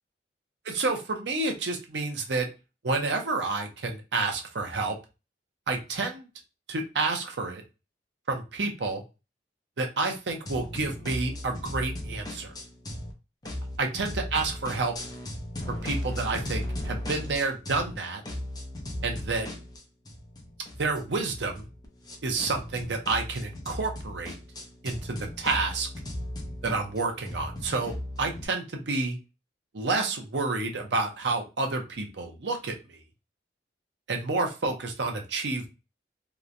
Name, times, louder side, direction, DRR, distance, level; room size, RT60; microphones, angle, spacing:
voice 1, 0.6-2.5 2.8-4.9 5.7-6.3 6.7-7.6 8.3-9.0 9.8-12.5 13.8-15.0 15.7-18.2 19.0-19.5 20.8-21.7 22.2-24.3 24.8-25.9 26.6-27.9 28.2-29.2 29.7-33.0 34.1-35.7, right 3 dB, 70° right, 3 dB, 0.7 m, -29 dB
sound 1, 10.5-13.1 13.4-18.0 18.2-28.5, left 1 dB, 25° left, 0.6 m, -37 dB
3.0 x 2.1 x 2.5 m, 0.29 s
head